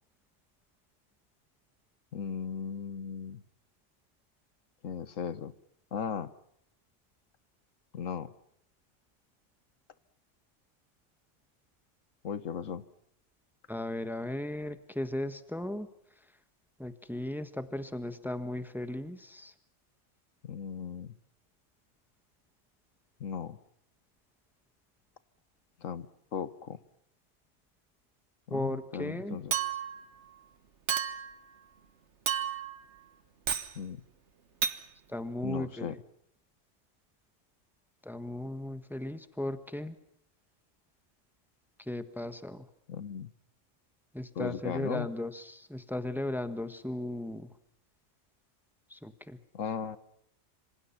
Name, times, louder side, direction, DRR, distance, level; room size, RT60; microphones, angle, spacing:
voice 1, 2.1-3.4 4.8-5.5 5.9-6.3 7.9-8.3 12.2-12.8 20.4-21.2 23.2-23.6 25.8-26.1 26.3-26.8 28.5-29.5 33.7-34.0 35.4-36.0 42.9-43.3 44.3-45.1 49.5-50.0, left 7 dB, 90° left, 14 dB, 1.5 m, -37 dB
voice 2, 13.7-15.9 16.8-19.5 28.5-29.4 35.1-36.0 38.0-39.9 41.8-42.6 44.1-47.5 48.9-49.4, left 1 dB, ahead, 11 dB, 1.3 m, -36 dB
Chink clink, 29.5-30.0 30.9-31.3 32.3-32.8 33.5-33.7 34.6-34.8, right 8 dB, 65° right, 1.5 m, -31 dB
26.5 x 26.0 x 5.9 m, 0.73 s
omnidirectional pair, 1.3 m